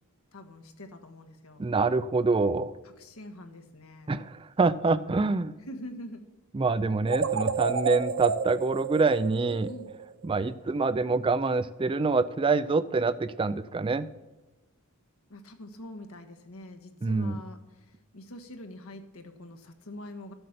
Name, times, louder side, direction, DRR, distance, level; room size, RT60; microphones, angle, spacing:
voice 1, 0.3-1.7 3.0-4.2 4.9-6.2 9.4-9.9 15.3-20.3, left 1 dB, 70° left, 5 dB, 1.4 m, -45 dB
voice 2, 1.6-2.7 4.1-5.5 6.5-9.7 10.2-14.1 17.0-17.4, right 3 dB, 25° right, 15 dB, 0.3 m, -26 dB
sound 1, 7.1-10.2, right 5 dB, 60° right, 0.8 m, -30 dB
13.5 x 7.9 x 6.5 m, 1.1 s
head